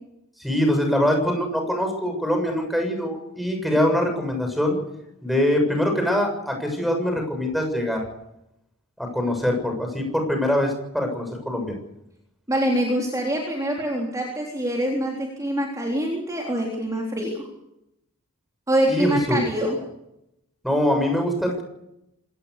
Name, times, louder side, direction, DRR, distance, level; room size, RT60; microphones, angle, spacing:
voice 1, 0.4-4.8 5.2-8.0 9.0-11.8 18.9-19.4 20.6-21.6, left 1 dB, ahead, 4 dB, 7.1 m, -23 dB
voice 2, 12.5-17.5 18.7-19.8, right 1 dB, 15° right, -1 dB, 3.8 m, -25 dB
27.0 x 18.5 x 6.8 m, 0.84 s
head